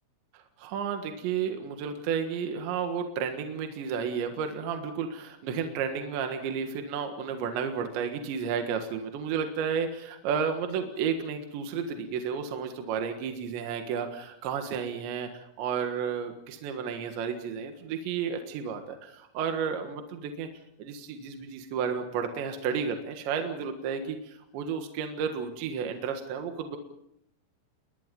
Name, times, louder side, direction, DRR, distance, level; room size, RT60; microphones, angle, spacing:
voice 1, 0.3-20.5 20.8-26.8, right 6 dB, 70° right, 5 dB, 3.7 m, -32 dB
29.0 x 22.5 x 5.3 m, 0.75 s
omnidirectional pair, 5.8 m